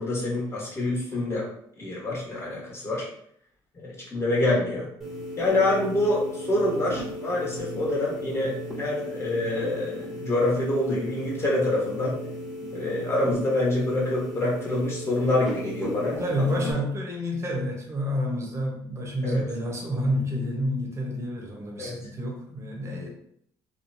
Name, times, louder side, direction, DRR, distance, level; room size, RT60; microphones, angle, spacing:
voice 1, 0.0-1.5 1.8-3.1 3.8-4.9 5.4-12.2 12.7-16.5 19.2-19.4 21.8-22.0, left 2 dB, 30° left, -4 dB, 1.3 m, -26 dB
sound 1, 5.0-16.7, equal, ahead, 1.0 m, -36 dB
voice 2, 16.2-23.1, equal, 30° right, 0 dB, 0.9 m, -29 dB
2.9 x 2.1 x 2.6 m, 0.67 s
cardioid pair, 85°, 9 cm